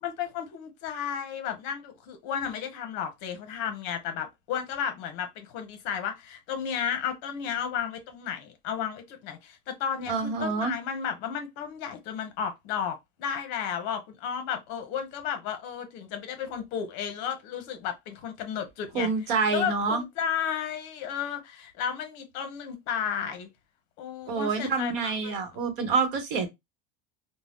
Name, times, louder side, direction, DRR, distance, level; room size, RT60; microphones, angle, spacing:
voice 1, 0.0-19.1 19.5-23.5 24.0-25.5, left 8 dB, 40° left, 0.7 m, -33 dB
voice 2, 10.1-10.7 18.9-20.0 24.3-26.5, right 4 dB, 65° right, 1.0 m, -27 dB
2.6 x 2.1 x 3.4 m
supercardioid pair, 175°, 29 cm